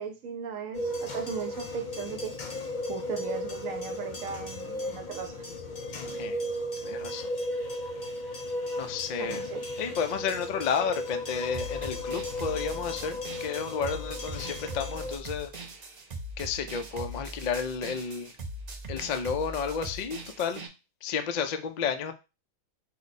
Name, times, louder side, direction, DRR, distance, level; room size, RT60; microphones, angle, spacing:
voice 1, 0.0-2.3 2.9-5.5 9.2-9.7, right 6 dB, 75° right, 1.0 m, -37 dB
sound 1, 0.7-15.2, left 1 dB, 45° left, 0.7 m, -35 dB
voice 2, 6.8-7.3 8.7-9.4 9.8-15.5 16.4-18.3 18.9-20.6 21.0-22.1, left 6 dB, 70° left, 0.4 m, -31 dB
sound 2, 11.5-20.7, right 1 dB, 45° right, 0.5 m, -40 dB
4.9 x 2.2 x 4.0 m
omnidirectional pair, 1.4 m